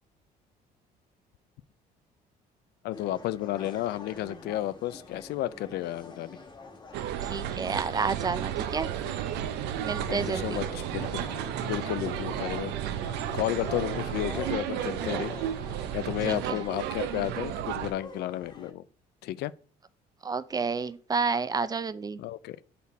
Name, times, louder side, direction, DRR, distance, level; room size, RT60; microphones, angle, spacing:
voice 1, 2.8-6.4 10.1-11.2 11.6-12.7 13.3-15.3 15.9-18.8 19.2-19.5 22.2-22.6, left 14 dB, 75° left, 0.4 m, -32 dB
sound 1, 2.9-18.7, left 3 dB, 25° left, 1.3 m, -45 dB
sound 2, 6.9-17.9, right 10 dB, 90° right, 0.6 m, -33 dB
voice 2, 7.2-8.9 9.8-10.6 16.3-16.6 20.2-22.2, right 4 dB, 20° right, 0.4 m, -30 dB
7.1 x 4.2 x 4.1 m
cardioid pair, 110°, 17 cm